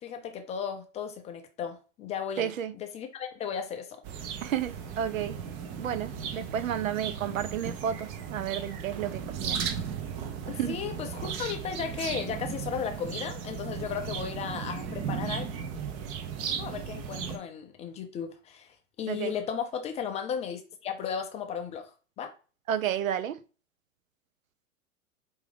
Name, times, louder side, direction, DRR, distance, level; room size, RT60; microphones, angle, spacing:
voice 1, 0.0-4.0 10.5-15.5 16.5-21.9 22.2-22.3, left 7 dB, 20° left, 0.3 m, -35 dB
voice 2, 2.4-2.7 4.4-5.4 5.8-9.6 10.5-10.8 19.1-19.3 22.7-23.4, right 9 dB, 85° right, 0.5 m, -31 dB
sound 1, 4.0-17.4, right 7 dB, 40° right, 0.7 m, -36 dB
4.7 x 2.6 x 3.3 m
hypercardioid pair, 105°, 39 cm